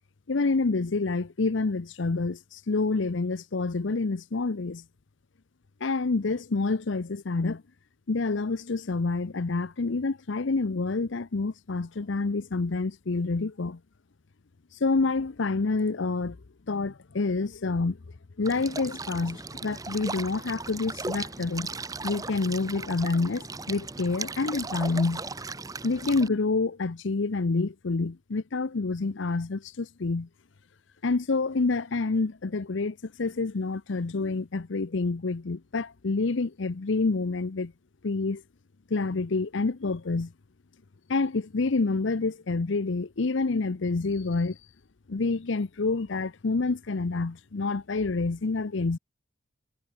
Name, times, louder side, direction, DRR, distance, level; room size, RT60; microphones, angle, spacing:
voice 1, 0.3-4.8 5.8-7.6 8.1-13.8 14.8-16.4 16.7-18.0 18.4-21.7 22.0-25.2 25.8-30.3 31.0-37.7 38.0-38.4 38.9-40.3 41.1-44.6 45.1-49.0, left 3 dB, 60° left, 0.7 m, -28 dB
sound 1, 18.4-26.3, right 3 dB, 15° right, 0.8 m, -37 dB
head